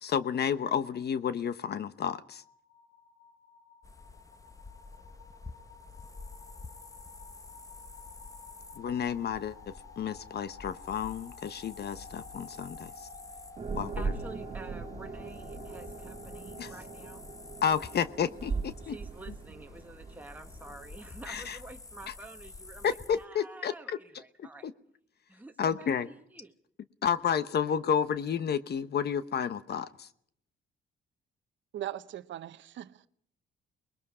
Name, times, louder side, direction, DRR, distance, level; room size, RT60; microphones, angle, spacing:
voice 1, 0.0-2.4 8.7-13.1 13.7-14.1 16.6-16.7 17.6-19.0 21.3-21.6 22.8-24.0 24.4-24.7 25.6-26.1 27.0-30.1, left 7 dB, 55° left, 1.0 m, -31 dB
sound 1, 1.6-19.4, left 4 dB, 85° left, 3.3 m, -53 dB
sound 2, 3.8-23.3, left 3 dB, 15° left, 1.0 m, -50 dB
sound 3, 13.6-21.6, right 4 dB, 30° right, 1.7 m, -40 dB
voice 2, 14.0-17.3 18.8-24.7 25.3-26.5, right 2 dB, 10° right, 1.4 m, -49 dB
voice 3, 31.7-33.1, right 12 dB, 70° right, 0.8 m, -39 dB
29.0 x 21.0 x 4.9 m
cardioid pair, 90°, 20 cm